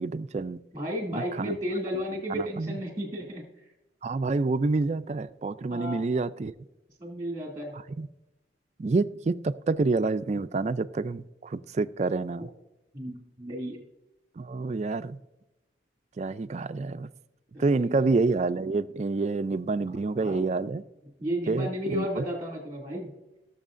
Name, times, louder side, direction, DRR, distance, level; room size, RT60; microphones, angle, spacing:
voice 1, 0.0-0.6 1.1-1.6 2.3-2.8 4.0-6.5 8.0-8.1 8.8-12.5 14.4-15.2 16.2-17.1 17.6-20.8 21.5-22.3, right 3 dB, 35° right, 13 dB, 0.3 m, -28 dB
voice 2, 0.7-3.4 5.7-6.0 7.0-7.7 12.9-13.8 17.5-18.0 20.1-20.5 21.2-23.1, equal, 20° right, 1 dB, 2.2 m, -33 dB
17.5 x 7.0 x 2.5 m, 0.98 s
head